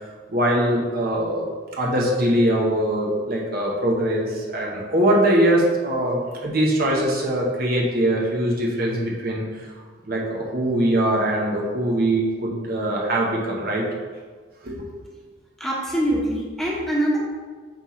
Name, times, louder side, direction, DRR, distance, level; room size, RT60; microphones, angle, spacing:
voice 1, 0.3-1.5 1.8-9.7 10.1-13.8 14.6-14.9, right 1 dB, 55° right, -2 dB, 1.1 m, -22 dB
voice 2, 15.6-17.2, right 1 dB, ahead, -5 dB, 1.2 m, -23 dB
7.6 x 4.4 x 3.2 m, 1.5 s
head